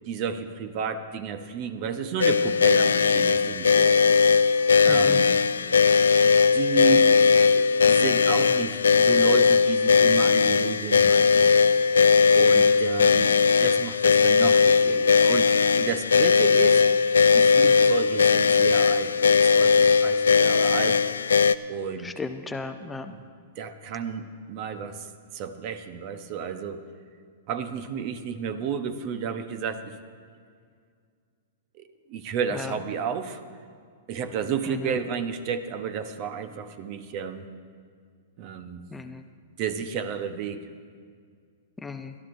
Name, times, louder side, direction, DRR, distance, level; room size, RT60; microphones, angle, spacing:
voice 1, 0.0-4.0 4.8-5.3 6.2-7.1 7.5-11.9 12.3-13.3 13.6-16.8 17.3-21.0 21.7-22.1 23.1-23.2 23.6-25.1 25.3-26.8 27.5-29.9 31.8-33.4 34.1-37.5 38.4-38.8 39.6-40.6, right 7 dB, 45° right, 10 dB, 0.9 m, -32 dB
sound 1, 2.2-21.6, left 5 dB, 85° left, 0.3 m, -19 dB
voice 2, 4.9-5.2 22.0-23.1 32.5-32.7 38.9-39.2 41.8-42.1, left 4 dB, 10° left, 7 dB, 0.6 m, -35 dB
22.0 x 12.5 x 2.6 m, 2.1 s
hypercardioid pair, 115°, 0 cm